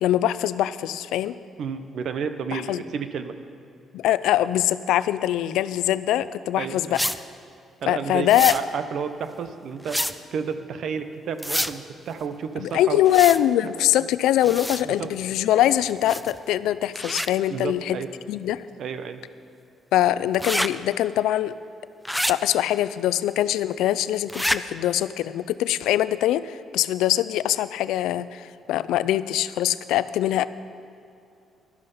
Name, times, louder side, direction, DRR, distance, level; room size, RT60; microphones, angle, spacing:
voice 1, 0.0-1.4 2.5-2.8 3.9-7.0 7.9-8.5 12.6-18.0 18.3-18.6 19.9-21.5 22.3-30.4, left 12 dB, 90° left, 16 dB, 0.4 m, -23 dB
voice 2, 1.6-3.3 6.6-7.0 7.8-13.0 14.0-14.1 14.8-15.1 17.5-18.1 18.8-19.2, right 6 dB, 70° right, 9 dB, 0.9 m, -31 dB
sound 1, 6.9-7.2 8.3-8.6 9.8-10.1 11.4-11.7 13.1-13.4 14.4-14.8 16.1-16.4 16.9-17.3 20.3-20.7 22.0-22.3 24.3-24.6, equal, ahead, 0.5 m, -26 dB
12.0 x 12.0 x 5.5 m, 2.6 s
cardioid pair, 90°, 0 cm